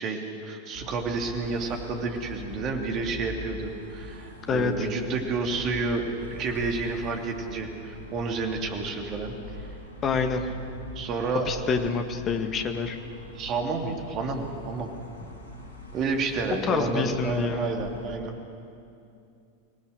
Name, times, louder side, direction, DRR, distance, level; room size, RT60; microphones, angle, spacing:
voice 1, 0.0-9.3 10.9-11.5 13.3-14.9 15.9-18.4, right 4 dB, 35° right, 3 dB, 2.8 m, -30 dB
sound 1, 0.7-18.2, left 2 dB, 80° right, 4.9 m, -43 dB
voice 2, 4.5-4.9 10.0-10.4 11.5-13.0 16.6-17.7, left 5 dB, 30° left, 6 dB, 1.9 m, -27 dB
25.5 x 18.5 x 6.8 m, 2.6 s
figure-of-eight pair, 90°, 0 cm